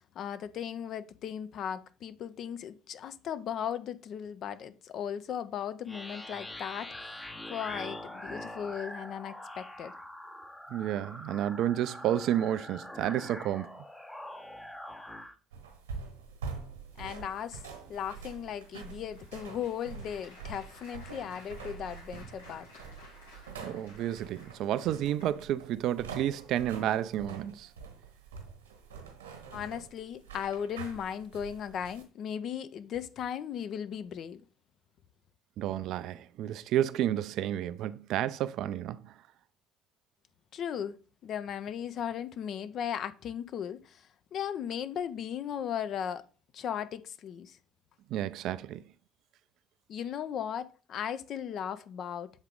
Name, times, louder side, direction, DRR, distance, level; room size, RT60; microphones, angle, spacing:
voice 1, 0.2-6.9 7.5-9.9 17.0-17.6 17.9-22.7 29.5-34.4 40.5-46.2 46.5-47.6 49.9-52.3, left 9 dB, 50° left, 0.4 m, -37 dB
sound 1, 5.9-15.3, left 1 dB, 10° left, 0.6 m, -44 dB
voice 2, 10.7-13.7 23.6-27.7 35.6-39.1 48.1-48.8, right 11 dB, 60° right, 0.3 m, -31 dB
sound 2, 15.5-32.0, right 5 dB, 85° right, 1.2 m, -45 dB
Applause, 17.6-25.7 26.3-26.6 26.9-27.0, left 2 dB, 85° left, 1.4 m, -55 dB
7.2 x 3.6 x 3.5 m
figure-of-eight pair, 55°, 0 cm